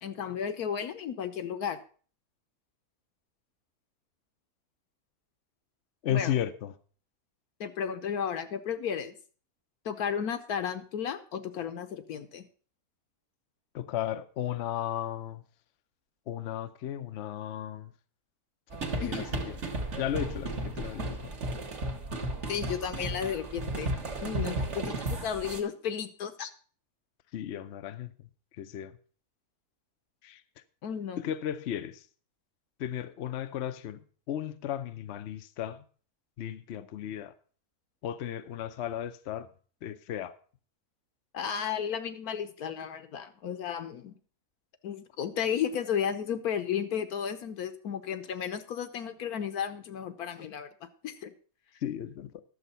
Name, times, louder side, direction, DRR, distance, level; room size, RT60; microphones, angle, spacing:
voice 1, 0.0-1.8 6.1-6.3 7.6-9.2 9.8-12.5 19.0-19.3 22.5-23.9 24.2-26.5 30.8-31.2 41.3-44.1 44.8-51.3, left 8 dB, 75° left, 1.4 m, -33 dB
voice 2, 6.0-6.8 13.7-15.4 16.3-17.9 18.9-19.5 20.0-21.3 27.3-29.0 30.2-30.4 31.2-32.1 32.8-35.8 36.4-37.3 38.0-39.5 39.8-40.3 51.8-52.4, left 11 dB, 60° left, 0.8 m, -35 dB
sound 1, 18.7-25.6, right 2 dB, 50° right, 1.7 m, -34 dB
11.0 x 7.2 x 5.5 m
omnidirectional pair, 1.6 m